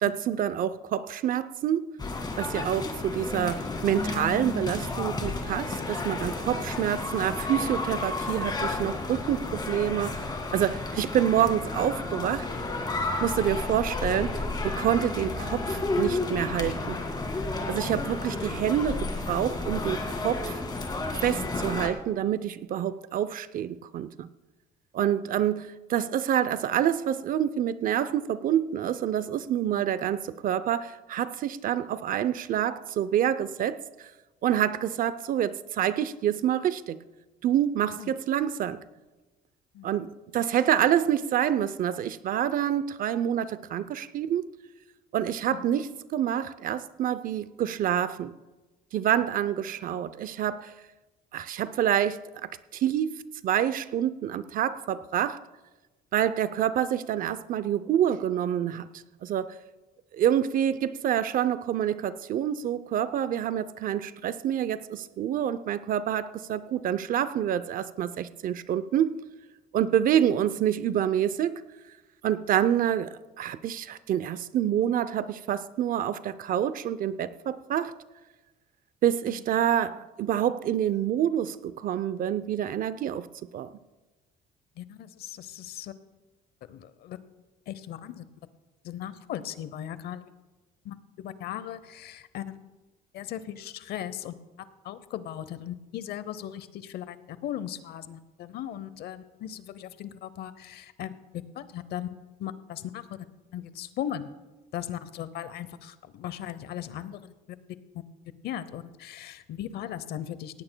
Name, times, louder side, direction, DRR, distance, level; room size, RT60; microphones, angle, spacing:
voice 1, 0.0-1.9 2.4-10.2 10.5-12.5 13.2-14.4 14.6-17.0 17.7-20.6 21.2-24.3 24.9-33.8 34.4-37.0 37.4-38.8 39.8-44.5 45.1-48.3 48.9-50.7 51.3-53.2 53.4-55.4 56.1-58.9 59.2-59.6 60.1-69.1 69.7-71.6 72.2-77.9 79.0-83.3 83.5-83.7, right 10 dB, 55° right, 16 dB, 0.6 m, -27 dB
sound 1, 2.0-21.9, left 3 dB, 25° left, 2.0 m, -32 dB
voice 2, 37.8-38.1 39.7-39.9 45.5-45.7 79.3-79.4 84.8-85.9 86.7-87.2 87.7-88.3 88.8-90.3 90.8-92.6 93.1-94.3 94.8-102.1 102.4-103.3 103.5-104.3 104.7-107.6 108.4-110.6, left 11 dB, 70° left, 15 dB, 0.8 m, -38 dB
18.0 x 16.5 x 2.2 m, 1.2 s
cardioid pair, 110°, 17 cm